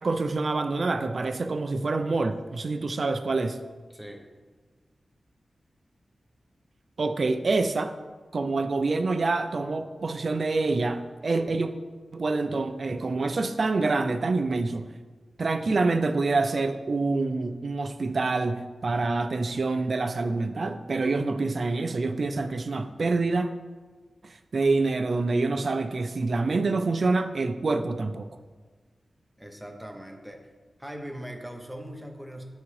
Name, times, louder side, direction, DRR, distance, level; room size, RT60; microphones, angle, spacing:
voice 1, 0.0-3.6 7.0-8.0 8.3-11.7 12.1-14.9 15.4-23.5 24.2-28.3, right 3 dB, 55° right, 8 dB, 0.3 m, -26 dB
voice 2, 3.9-4.2 29.4-30.5 30.8-32.4, equal, 5° right, 3 dB, 0.7 m, -40 dB
9.6 x 3.5 x 3.2 m, 1.4 s
wide cardioid pair, 105°, 0 cm